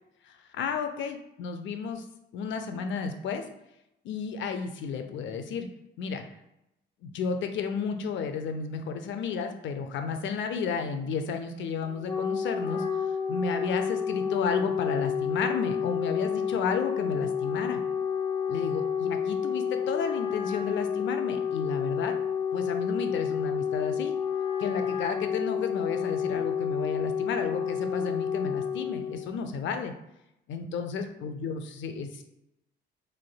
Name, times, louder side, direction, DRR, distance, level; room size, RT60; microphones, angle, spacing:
voice 1, 0.2-2.0 2.3-3.4 4.0-5.7 6.0-6.2 7.0-17.8 18.5-22.1 22.5-24.1 24.6-29.9 30.5-32.2, left 5 dB, 70° left, 7 dB, 0.5 m, -32 dB
Wind instrument woodwind instrument, 11.8-29.3, left 7 dB, 25° left, 0.5 m, -30 dB
3.6 x 3.3 x 2.2 m, 0.86 s
cardioid pair, 90°, 20 cm